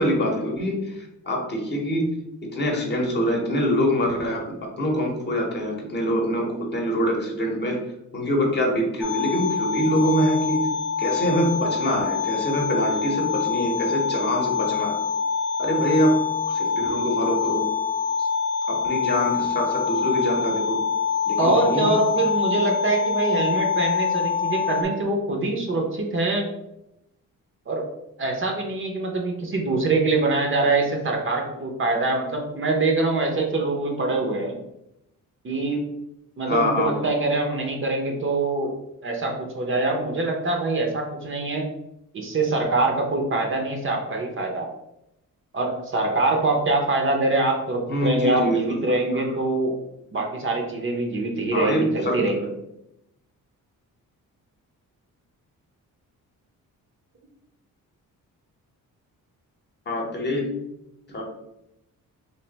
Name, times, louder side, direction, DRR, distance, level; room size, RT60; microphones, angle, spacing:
voice 1, 0.0-2.2 2.5-4.5 4.8-7.8 8.1-10.7 11.0-15.0 15.6-16.2 16.5-17.7 18.2-18.3 18.7-20.8 21.3-21.9 36.5-36.9 47.9-48.6 49.1-49.2 51.5-52.2 59.9-60.5 61.1-61.2, equal, 30° left, 0 dB, 0.9 m, -24 dB
sound 1, 9.0-24.8, left 6 dB, ahead, 0.5 m, -25 dB
voice 2, 21.4-26.5 27.7-27.8 28.2-34.5 35.4-35.8 36.4-38.7 39.0-41.6 42.1-44.7 45.5-49.7 50.1-52.5, right 2 dB, 40° right, 1 dB, 0.6 m, -24 dB
3.3 x 2.5 x 3.9 m, 0.85 s
cardioid pair, 140°, 33 cm